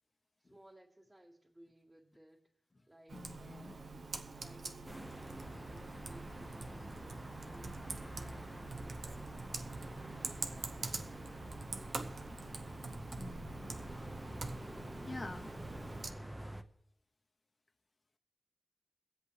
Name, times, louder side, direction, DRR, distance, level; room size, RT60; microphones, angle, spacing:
voice 1, 0.4-2.4 2.9-9.4 9.8-12.2, right 1 dB, 25° right, -7 dB, 2.2 m, -60 dB
voice 2, 3.1-3.8 13.2-13.7 14.3-14.4 15.1-15.5 16.0-16.2, left 2 dB, 30° left, 4 dB, 0.7 m, -47 dB
Computer keyboard, 3.1-16.1, right 3 dB, 65° right, 0.8 m, -45 dB
sound 1, 4.9-16.6, right 1 dB, 10° right, 0.7 m, -47 dB
23.0 x 8.0 x 3.3 m, 0.76 s
wide cardioid pair, 85°, 0 cm